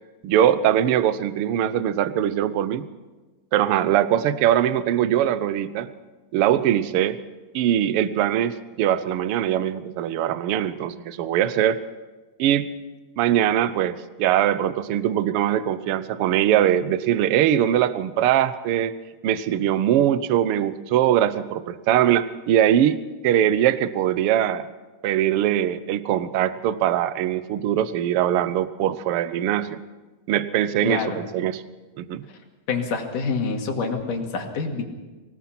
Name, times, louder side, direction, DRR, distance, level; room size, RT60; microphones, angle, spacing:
voice 1, 0.2-2.8 3.5-5.9 6.3-7.2 7.5-11.8 12.4-12.7 13.2-18.9 19.2-24.7 25.0-29.8 30.3-31.6 32.0-32.2, right 11 dB, 70° right, 14 dB, 1.3 m, -21 dB
voice 2, 30.8-31.2 32.7-34.8, left 4 dB, 85° left, 3 dB, 3.8 m, -26 dB
24.5 x 18.5 x 6.0 m, 1.2 s
omnidirectional pair, 3.6 m